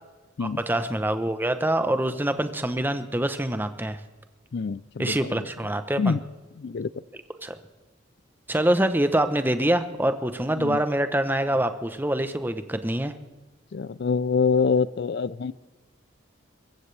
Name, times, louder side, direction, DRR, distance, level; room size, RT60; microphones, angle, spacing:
voice 1, 0.4-4.0 5.0-6.2 7.4-7.6 8.5-13.1, right 1 dB, 10° right, 9 dB, 0.8 m, -25 dB
voice 2, 4.5-5.4 6.0-6.2 6.6-6.9 10.6-10.8 13.7-15.5, left 5 dB, 55° left, 19 dB, 0.4 m, -25 dB
23.5 x 14.5 x 3.3 m, 1.3 s
head